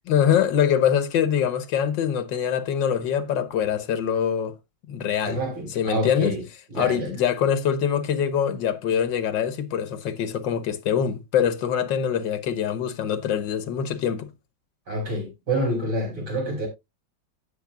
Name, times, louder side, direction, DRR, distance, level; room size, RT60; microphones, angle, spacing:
voice 1, 0.1-4.5 4.9-5.4 5.7-6.4 6.7-14.3, left 8 dB, 80° left, 1.7 m, -24 dB
voice 2, 5.2-6.4 6.7-7.1 14.9-16.7, right 1 dB, 65° right, 6.0 m, -27 dB
17.0 x 6.2 x 2.3 m
omnidirectional pair, 2.0 m